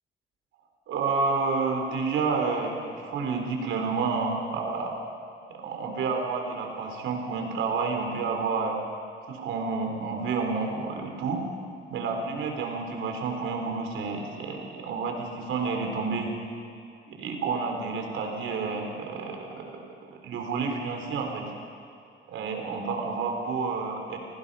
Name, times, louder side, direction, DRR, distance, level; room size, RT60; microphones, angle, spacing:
voice 1, 0.9-4.9 5.5-8.8 9.2-11.4 11.9-16.3 17.1-21.4 22.3-24.2, right 4 dB, 80° right, 2 dB, 4.0 m, -30 dB
29.0 x 19.0 x 5.6 m, 2.6 s
cardioid pair, 90°, 20 cm